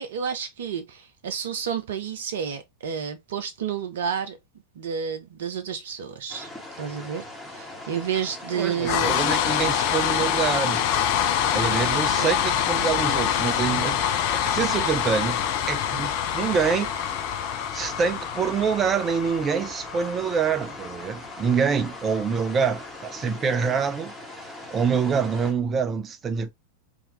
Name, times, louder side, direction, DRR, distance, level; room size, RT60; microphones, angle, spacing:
voice 1, 0.0-4.4 4.7-6.5 6.8-9.2 12.2-12.3, right 7 dB, 60° right, 0.9 m, -30 dB
sound 1, 6.3-25.5, left 1 dB, 5° right, 1.6 m, -41 dB
voice 2, 8.5-10.8 11.5-15.4 15.7-16.9 17.7-26.5, right 6 dB, 25° right, 0.5 m, -26 dB
sound 2, 8.8-22.9, left 9 dB, 45° left, 0.6 m, -26 dB
3.5 x 2.9 x 3.2 m
figure-of-eight pair, 90°, 0 cm